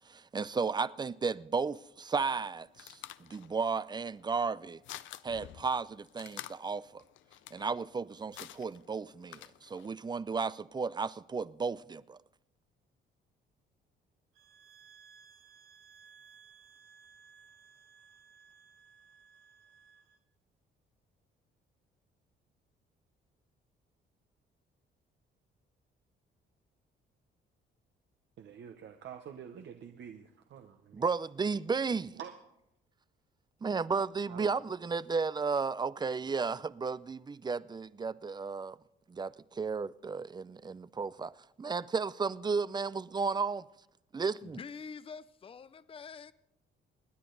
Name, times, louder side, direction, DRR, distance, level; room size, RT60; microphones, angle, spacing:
voice 1, 0.0-4.8 5.2-7.0 7.5-12.2 30.9-32.1 33.6-38.8 39.1-41.3 41.6-43.7 44.1-44.6, right 5 dB, 20° right, 0.4 m, -34 dB
sound 1, 2.3-9.9, left 13 dB, 75° left, 0.5 m, -50 dB
sound 2, 14.3-20.2, right 6 dB, 85° right, 1.2 m, -59 dB
voice 2, 28.4-31.0 32.1-32.3 34.3-34.5, right 8 dB, 65° right, 1.0 m, -47 dB
voice 3, 44.4-46.3, left 5 dB, 30° left, 0.5 m, -46 dB
26.5 x 9.9 x 4.0 m
cardioid pair, 90°, 20 cm